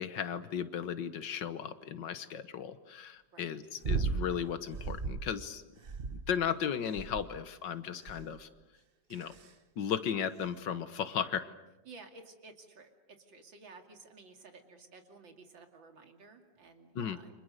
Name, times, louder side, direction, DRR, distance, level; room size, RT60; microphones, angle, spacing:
voice 1, 0.0-5.6 6.1-8.5 9.1-9.4 9.8-11.5 16.9-17.2, left 8 dB, 70° left, 12 dB, 1.8 m, -35 dB
sound 1, 3.8-4.3 4.7-5.3 5.8-6.5 7.0-7.4 8.1-8.4 9.1-9.5 10.4-10.5, right 4 dB, 35° right, 1.0 m, -35 dB
voice 2, 11.8-17.4, right 3 dB, 90° right, 5 dB, 3.3 m, -54 dB
30.0 x 26.0 x 6.6 m, 1.1 s
omnidirectional pair, 2.0 m